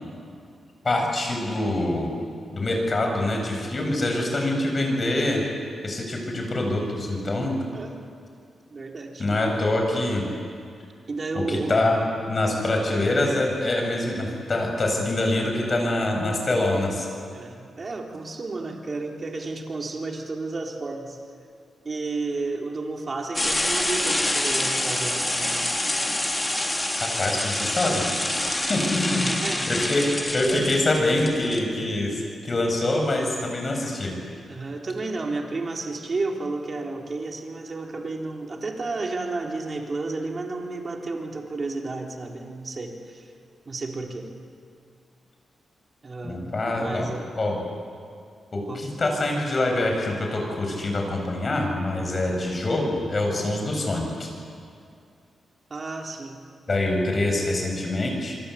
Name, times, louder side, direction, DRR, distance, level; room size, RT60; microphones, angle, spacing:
voice 1, 0.8-2.1 2.5-5.4 5.8-7.6 9.2-10.2 11.3-17.1 27.0-28.0 28.3-29.2 29.5-30.1 30.3-34.1 46.2-47.1 47.4-47.6 48.5-54.3 56.7-58.4, left 2 dB, 40° left, 2 dB, 8.0 m, -25 dB
voice 2, 7.7-8.0 8.7-9.2 11.1-11.8 15.0-15.1 17.3-21.2 21.8-25.7 29.1-29.9 30.5-30.8 34.5-43.3 43.7-44.3 46.0-47.3 48.7-48.9 55.7-56.4, right 3 dB, 40° right, 1 dB, 3.9 m, -32 dB
sound 1, 23.4-31.6, left 1 dB, 15° left, 3.6 m, -26 dB
27.0 x 23.5 x 8.7 m, 2.4 s
cardioid pair, 80°, 0 cm